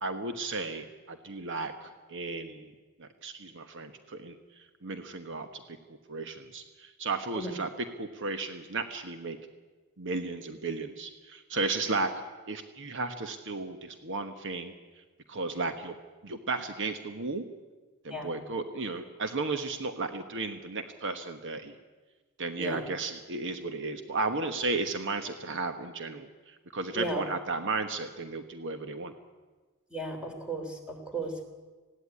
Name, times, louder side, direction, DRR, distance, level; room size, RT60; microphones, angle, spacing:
voice 1, 0.0-2.7 3.0-4.4 4.8-5.8 6.1-7.7 8.0-9.4 10.0-12.1 12.5-14.7 15.3-15.9 16.2-17.4 18.0-21.7 22.4-29.1, right 3 dB, 55° right, 8 dB, 1.2 m, -34 dB
voice 2, 29.9-31.4, right 1 dB, 5° right, 3 dB, 3.5 m, -35 dB
19.5 x 16.0 x 9.8 m, 1.3 s
head